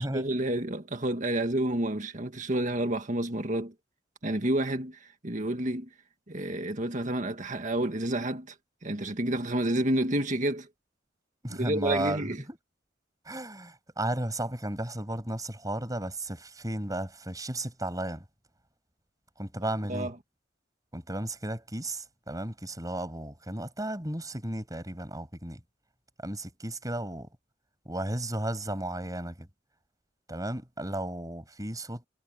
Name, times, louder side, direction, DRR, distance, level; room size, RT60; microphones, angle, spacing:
voice 1, 0.0-3.7 4.2-5.9 6.3-8.6 8.8-10.7 11.6-12.4 19.9-20.1, right 1 dB, 40° right, 1.8 m, -29 dB
voice 2, 11.4-12.2 12.5-12.6 13.2-18.2 19.4-20.1 20.9-25.6 26.2-27.3 27.9-29.5 30.3-32.1, right 1 dB, 20° right, 7.5 m, -34 dB
head